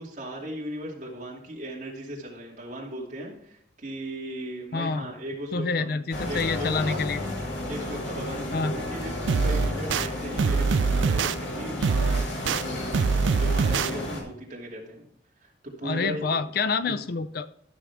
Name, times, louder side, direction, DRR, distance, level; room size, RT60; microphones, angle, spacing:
voice 1, 0.0-6.0 6.3-7.0 7.7-15.0 15.4-16.4 16.9-17.0, right 1 dB, 40° right, -3 dB, 2.6 m, -37 dB
voice 2, 4.7-5.1 5.5-7.2 8.5-8.7 15.8-17.5, left 4 dB, 55° left, 13 dB, 0.4 m, -27 dB
sound 1, 6.1-14.2, left 1 dB, 80° left, 2.3 m, -33 dB
sound 2, 9.3-10.1 10.4-11.4 11.8-12.6 12.9-13.9, right 5 dB, 85° right, 0.4 m, -23 dB
13.5 x 6.4 x 3.5 m, 0.69 s
head